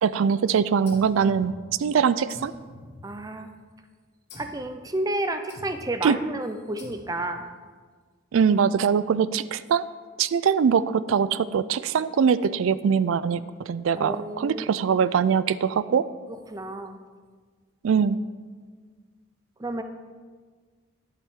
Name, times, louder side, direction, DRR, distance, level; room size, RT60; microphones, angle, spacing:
voice 1, 0.0-1.5 1.8-2.5 6.0-6.2 8.3-9.9 10.2-16.1 17.8-18.2, right 6 dB, 75° right, 16 dB, 0.3 m, -22 dB
sound 1, 0.9-1.9 2.3-3.6 4.3-4.7 5.5-6.0 6.8-7.4, left 2 dB, 50° left, 1.9 m, -46 dB
voice 2, 3.0-3.5 4.4-7.4 14.0-14.8 16.5-17.0 19.6-19.8, right 1 dB, 15° right, 8 dB, 0.5 m, -31 dB
11.0 x 7.5 x 3.7 m, 1.5 s
head